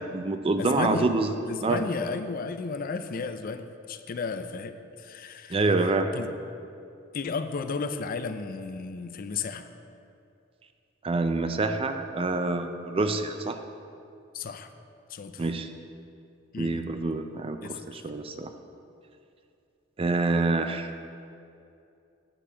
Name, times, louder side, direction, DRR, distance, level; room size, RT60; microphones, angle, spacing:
voice 1, 0.0-1.3 1.6-1.8 5.5-6.1 11.0-13.6 15.4-15.7 16.6-18.5 20.0-20.9, right 3 dB, 30° right, 7 dB, 0.4 m, -26 dB
voice 2, 0.6-1.1 1.5-5.6 6.1-6.3 7.1-9.7 14.3-14.7 15.1-15.5 16.5-16.8 17.6-18.1, left 4 dB, 45° left, 9 dB, 0.4 m, -33 dB
10.0 x 4.4 x 6.7 m, 2.5 s
head